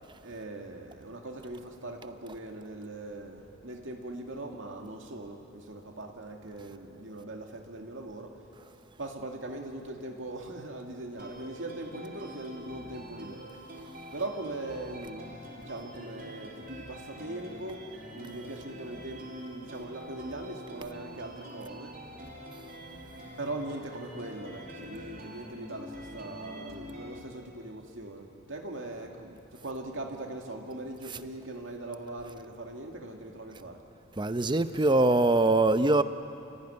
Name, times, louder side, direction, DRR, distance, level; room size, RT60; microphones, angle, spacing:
voice 1, 0.2-8.4 9.0-13.5 14.1-21.9 23.4-33.8, right 2 dB, 70° right, 2.4 m, -40 dB
sound 1, 11.2-27.2, equal, 50° right, 4.1 m, -46 dB
voice 2, 34.2-36.0, right 2 dB, 25° right, 0.7 m, -23 dB
29.0 x 15.5 x 9.7 m
head